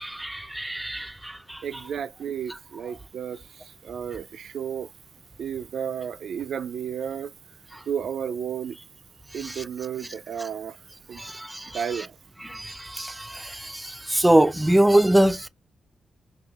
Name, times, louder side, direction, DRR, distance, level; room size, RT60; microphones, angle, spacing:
voice 1, 0.0-1.6 9.4-9.6 11.2-11.8 12.5-15.5, right 1 dB, 10° right, 0.4 m, -23 dB
voice 2, 1.6-4.9 5.4-7.3 7.9-8.8 9.3-10.8 11.1-11.2 11.7-12.2, right 8 dB, 75° right, 0.3 m, -32 dB
5.3 x 2.7 x 2.3 m
cardioid pair, 75°, 0 cm